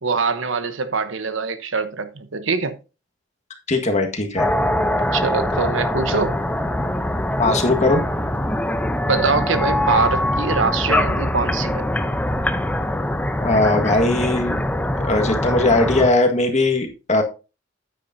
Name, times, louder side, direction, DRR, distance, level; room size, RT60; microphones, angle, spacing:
voice 1, 0.0-2.8 5.1-6.4 9.0-11.8, right 4 dB, 75° right, 1.0 m, -23 dB
voice 2, 3.7-4.5 7.4-8.0 13.4-14.6 15.0-17.2, left 2 dB, 35° left, 1.7 m, -19 dB
sound 1, 4.4-16.1, left 1 dB, 10° left, 0.6 m, -23 dB
9.7 x 9.2 x 2.7 m
head